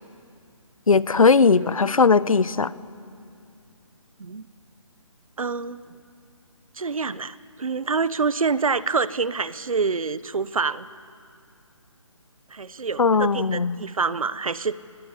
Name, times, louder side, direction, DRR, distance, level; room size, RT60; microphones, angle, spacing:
voice 1, 0.9-2.7 13.0-13.8, left 4 dB, 90° left, 18 dB, 0.9 m, -18 dB
voice 2, 5.4-5.8 6.8-10.9 12.5-14.9, right 4 dB, 90° right, 17 dB, 1.0 m, -26 dB
23.0 x 19.5 x 9.7 m, 2.4 s
hypercardioid pair, 165°, 17 cm